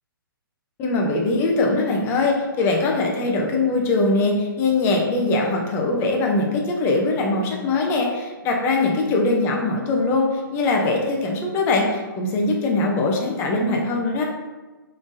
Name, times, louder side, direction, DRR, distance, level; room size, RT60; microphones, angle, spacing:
voice 1, 0.8-14.2, left 2 dB, 20° left, 0 dB, 0.6 m, -21 dB
5.1 x 3.2 x 2.6 m, 1.2 s
figure-of-eight pair, 130°, 12 cm